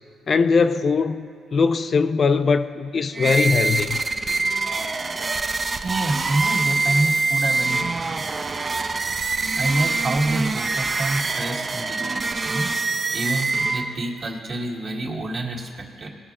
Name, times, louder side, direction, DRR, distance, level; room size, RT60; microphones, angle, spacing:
voice 1, 0.3-4.0, left 5 dB, 45° left, 0.4 m, -21 dB
sound 1, 3.1-14.2, right 3 dB, 35° right, 0.5 m, -25 dB
voice 2, 5.4-8.3 9.6-12.7 13.1-16.1, right 2 dB, 50° right, 1.8 m, -27 dB
18.5 x 6.2 x 3.6 m
cardioid pair, 90°, 0 cm